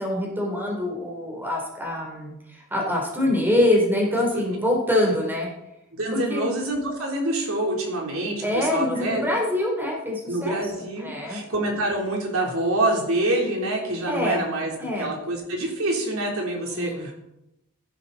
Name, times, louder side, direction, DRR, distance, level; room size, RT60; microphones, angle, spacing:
voice 1, 0.0-5.5 6.1-6.5 8.4-10.6 11.0-11.4 14.1-14.5 14.8-15.1 16.6-17.1, left 1 dB, 10° right, -1 dB, 3.4 m, -25 dB
voice 2, 5.9-9.3 10.3-14.7 15.0-17.1, right 1 dB, 70° right, -1 dB, 3.5 m, -26 dB
15.5 x 11.5 x 4.1 m, 0.88 s
head